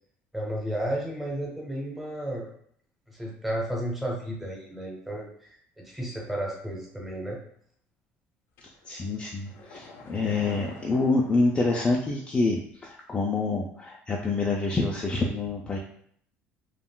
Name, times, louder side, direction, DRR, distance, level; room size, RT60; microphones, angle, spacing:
voice 1, 0.3-2.5 3.1-5.5 5.8-7.4, right 1 dB, 5° right, -2 dB, 0.9 m, -33 dB
sound 1, 8.6-12.3 12.6-12.7, left 2 dB, 60° left, 0.6 m, -47 dB
voice 2, 8.9-15.8, left 3 dB, 20° left, -2 dB, 0.4 m, -27 dB
3.6 x 2.3 x 2.2 m, 0.64 s
cardioid pair, 120°, 5 cm